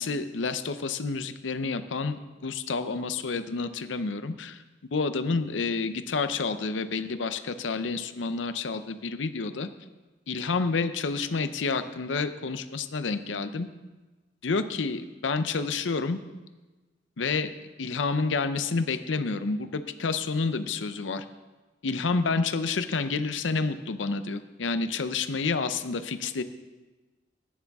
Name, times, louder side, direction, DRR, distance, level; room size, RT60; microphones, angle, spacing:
voice 1, 0.0-4.6 4.9-9.7 10.3-13.7 14.4-16.2 17.2-17.5 17.8-21.2 21.8-26.4, left 4 dB, 85° left, 11 dB, 0.6 m, -29 dB
14.0 x 9.6 x 3.6 m, 1.2 s
head